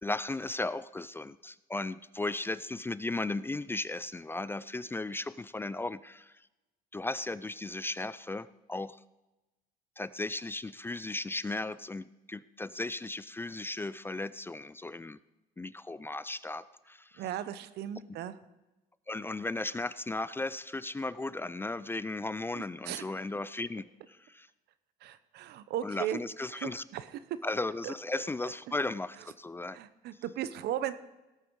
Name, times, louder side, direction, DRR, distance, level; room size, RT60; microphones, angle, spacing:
voice 1, 0.0-6.4 6.9-9.0 10.0-15.2 15.6-17.2 19.1-24.5 25.8-26.8 27.4-29.8, left 2 dB, 15° left, 17 dB, 0.3 m, -36 dB
voice 2, 17.2-18.3 22.6-23.0 25.0-26.2 26.5-27.0 27.8-27.9 29.7-30.9, right 11 dB, 75° right, 14 dB, 0.9 m, -36 dB
17.5 x 8.8 x 4.7 m, 1.0 s
cardioid pair, 110°, 17 cm